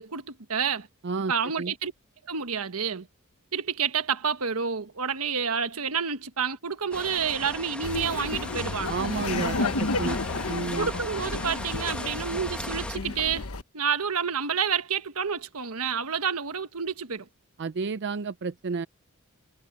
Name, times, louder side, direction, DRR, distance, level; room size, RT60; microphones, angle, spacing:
voice 1, 0.0-0.9 1.3-1.9 2.3-3.1 3.5-9.0 10.8-13.5 13.7-17.3, right 6 dB, 90° right, 1.4 m, -29 dB
voice 2, 1.0-1.7 8.9-10.2 10.5-10.9 17.6-18.9, right 4 dB, 55° right, 0.5 m, -31 dB
sound 1, 6.9-13.0, left 1 dB, 5° left, 1.3 m, -38 dB
Laughter, 7.8-13.6, left 3 dB, 85° left, 1.2 m, -31 dB
head